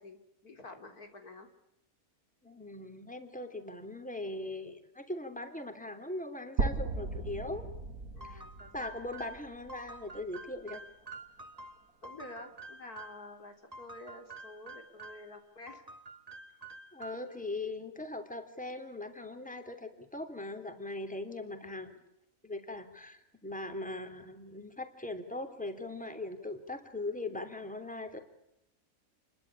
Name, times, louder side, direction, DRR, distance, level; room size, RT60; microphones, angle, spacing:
voice 1, 0.0-1.5 8.1-8.9 12.0-15.8 21.6-22.0, left 2 dB, 85° left, 5 dB, 4.3 m, -49 dB
voice 2, 2.4-7.7 8.3-8.4 8.7-10.8 16.9-21.9 22.4-28.2, left 2 dB, 5° left, 6 dB, 3.2 m, -40 dB
sound 1, 6.6-10.5, right 3 dB, 85° right, 2.6 m, -37 dB
sound 2, 8.2-13.3 13.7-15.3 15.7-17.4, right 2 dB, 25° right, 2.2 m, -49 dB
29.5 x 22.5 x 8.7 m, 0.82 s
omnidirectional pair, 1.5 m